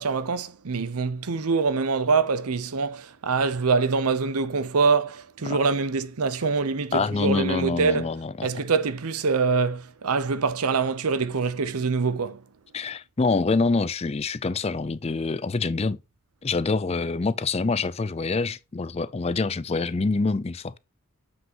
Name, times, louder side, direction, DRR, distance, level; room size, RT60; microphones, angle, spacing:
voice 1, 0.0-8.1 8.4-12.4, right 4 dB, 90° right, 0.7 m, -24 dB
voice 2, 6.9-8.5 12.7-16.0 16.4-20.8, left 3 dB, 30° left, 0.4 m, -26 dB
7.3 x 6.1 x 2.9 m
head